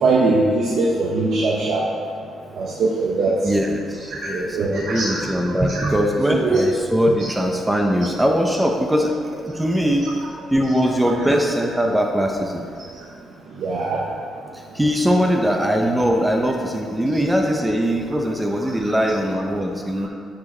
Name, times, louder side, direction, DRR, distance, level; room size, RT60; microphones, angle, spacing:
voice 1, 0.0-1.9 2.5-3.3 4.3-5.2 5.7-5.9 6.3-6.6 13.6-14.0 20.0-20.1, right 3 dB, 70° right, -4 dB, 0.9 m, -21 dB
voice 2, 3.4-10.0 10.5-12.6 14.5-20.1, equal, 10° right, 2 dB, 0.7 m, -21 dB
9.3 x 4.8 x 4.3 m, 2.3 s
cardioid pair, 90°, 0 cm